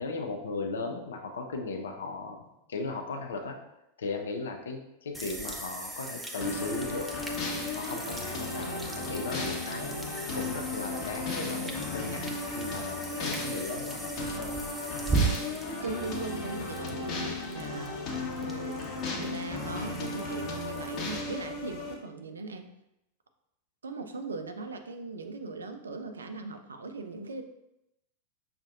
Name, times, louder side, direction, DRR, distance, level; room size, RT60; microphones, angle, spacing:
voice 1, 0.0-3.6 4.0-7.1 7.7-12.2 12.6-15.1 18.2-18.3, left 3 dB, 65° left, 3 dB, 0.6 m, -37 dB
sound 1, 5.1-21.2, right 4 dB, 10° right, 0.5 m, -38 dB
sound 2, 6.4-21.9, left 2 dB, 35° left, 0.9 m, -35 dB
voice 2, 15.8-18.0 18.4-18.8 19.2-22.7 23.8-27.4, right 3 dB, 70° right, 7 dB, 0.4 m, -39 dB
6.0 x 2.5 x 2.6 m, 0.86 s
figure-of-eight pair, 90°, 0 cm